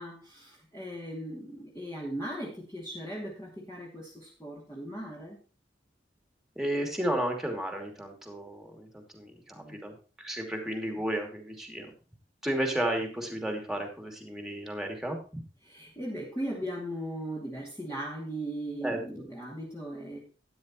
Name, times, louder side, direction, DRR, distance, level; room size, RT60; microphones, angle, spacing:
voice 1, 0.0-5.4 9.5-9.9 15.6-20.2, right 1 dB, 15° left, -5 dB, 2.6 m, -38 dB
voice 2, 6.6-11.9 12.4-15.4 18.8-19.2, right 1 dB, ahead, 2 dB, 2.7 m, -33 dB
12.5 x 10.5 x 3.1 m, 0.36 s
head